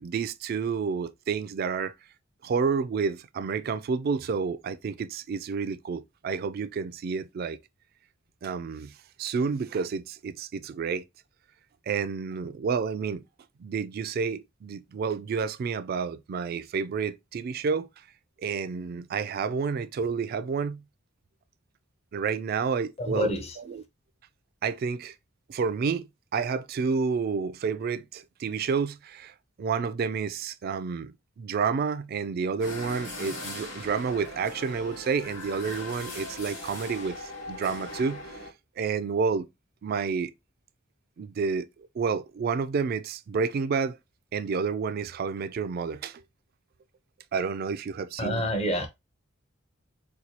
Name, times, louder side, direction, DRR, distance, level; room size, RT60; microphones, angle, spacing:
voice 1, 0.0-1.9 2.4-7.6 8.4-8.9 9.2-11.0 11.9-13.2 13.6-17.9 18.4-20.8 22.1-23.3 23.7-23.8 24.6-25.1 25.5-38.4 38.8-39.5 39.8-40.3 41.2-41.7 41.9-44.0 44.3-46.2 47.3-48.4, right 5 dB, 50° right, 0.3 m, -30 dB
voice 2, 23.0-23.6 48.2-48.9, equal, 30° left, 0.6 m, -28 dB
sound 1, 32.6-38.5, left 1 dB, 85° left, 2.0 m, -39 dB
4.2 x 2.3 x 2.8 m
head